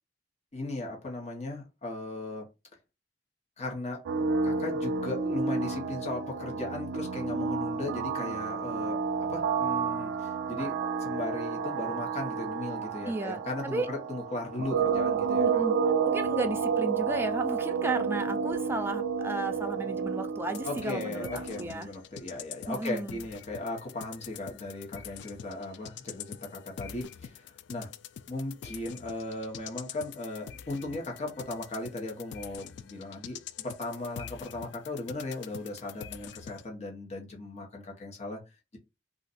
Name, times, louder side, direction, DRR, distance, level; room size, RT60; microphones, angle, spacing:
voice 1, 0.5-2.5 3.6-4.0 4.4-15.7 20.6-27.9 28.3-38.4, left 2 dB, 35° left, 1.0 m, -37 dB
sound 1, 4.1-21.6, right 5 dB, 75° right, 0.3 m, -30 dB
voice 2, 13.0-13.9 15.4-15.7 16.0-21.9 22.7-23.2, right 2 dB, 15° right, 0.4 m, -34 dB
sound 2, 20.5-36.7, left 9 dB, 70° left, 0.3 m, -46 dB
2.5 x 2.4 x 4.0 m
head